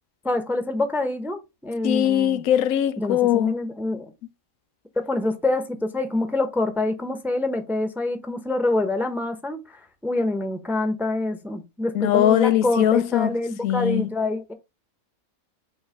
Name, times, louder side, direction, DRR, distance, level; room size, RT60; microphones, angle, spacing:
voice 1, 0.2-2.4 3.0-4.1 5.0-14.5, left 2 dB, ahead, 0.7 m, -26 dB
voice 2, 1.8-3.5 11.9-13.3 13.6-14.1, left 11 dB, 85° left, 1.0 m, -20 dB
5.5 x 3.1 x 5.6 m
omnidirectional pair, 1.5 m